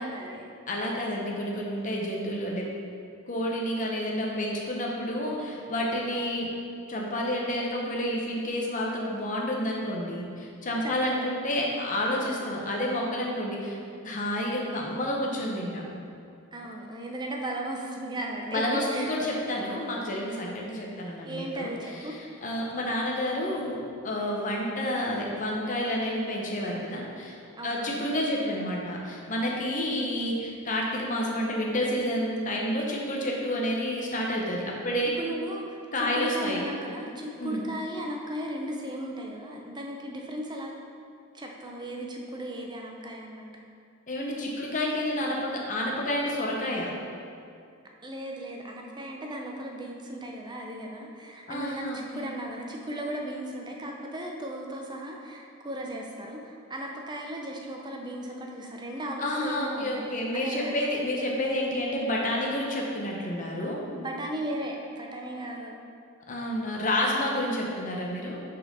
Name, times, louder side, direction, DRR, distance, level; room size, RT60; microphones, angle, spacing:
voice 1, 0.0-0.5 6.1-6.3 10.8-11.3 16.5-19.1 21.2-22.4 27.6-28.0 35.0-40.7 41.3-43.6 48.0-60.8 63.8-65.8, right 1 dB, 20° right, 0 dB, 0.5 m, -36 dB
voice 2, 0.7-2.7 3.3-6.5 6.9-15.9 18.5-27.4 27.6-35.1 35.9-36.6 37.4-37.6 44.1-46.9 51.5-52.3 59.2-63.8 66.3-68.4, left 1 dB, 35° left, -2 dB, 0.9 m, -29 dB
5.3 x 4.3 x 5.4 m, 2.4 s
head